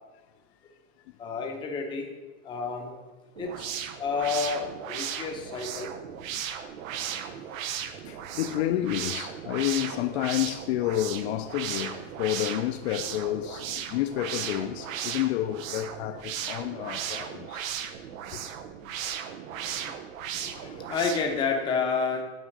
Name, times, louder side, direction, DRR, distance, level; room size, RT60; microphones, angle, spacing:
voice 1, 1.2-2.1 2.4-3.0 3.4-5.9 20.3-22.2, left 5 dB, 10° left, 0.6 m, -30 dB
sound 1, 3.4-21.4, right 9 dB, 85° right, 0.9 m, -36 dB
voice 2, 8.1-17.7 18.3-18.4 19.8-19.9, left 13 dB, 55° left, 0.4 m, -30 dB
9.1 x 3.6 x 6.4 m
supercardioid pair, 160°, 39 cm